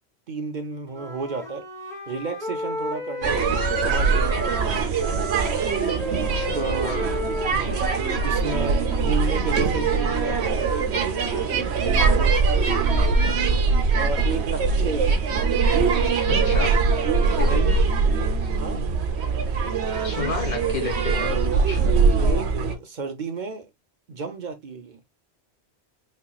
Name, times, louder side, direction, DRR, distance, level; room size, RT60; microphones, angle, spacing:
voice 1, 0.3-1.6 2.1-4.8 6.5-6.9 7.5-7.8 8.2-13.5 13.9-15.2 17.4-18.8 21.7-23.7 24.1-25.0, right 4 dB, 50° right, 0.7 m, -33 dB
Wind instrument woodwind instrument, 0.9-4.7 5.0-9.0, left 1 dB, 5° left, 1.2 m, -34 dB
sound 1, 3.2-22.8, right 4 dB, 75° right, 1.1 m, -22 dB
voice 2, 6.3-7.1 16.3-16.8 17.3-17.6 20.0-21.8, left 4 dB, 45° left, 1.6 m, -31 dB
4.3 x 2.9 x 2.2 m
omnidirectional pair, 1.1 m